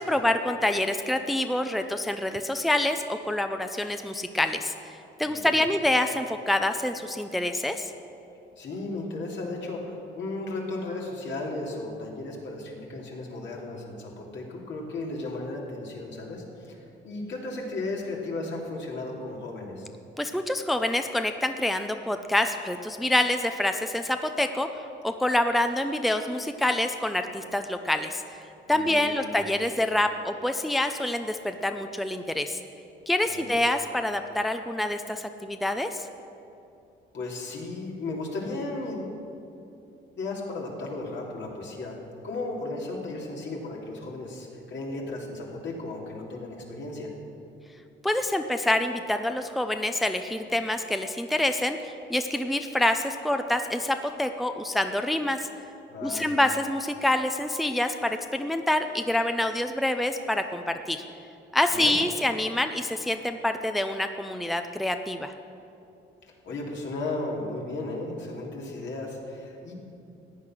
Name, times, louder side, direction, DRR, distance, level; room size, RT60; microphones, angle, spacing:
voice 1, 0.0-4.7 5.2-7.9 20.2-24.7 25.0-28.2 28.7-32.6 33.1-36.1 48.0-55.5 56.0-61.0 61.5-65.3, left 1 dB, ahead, 7 dB, 0.6 m, -26 dB
voice 2, 5.2-5.7 8.6-16.8 17.0-19.9 28.7-29.3 33.3-33.5 37.1-39.1 40.2-42.0 42.2-47.1 55.9-56.3 61.7-61.9 66.4-69.7, left 2 dB, 65° left, -2 dB, 2.8 m, -35 dB
14.5 x 9.4 x 6.2 m, 2.7 s
cardioid pair, 90°, 20 cm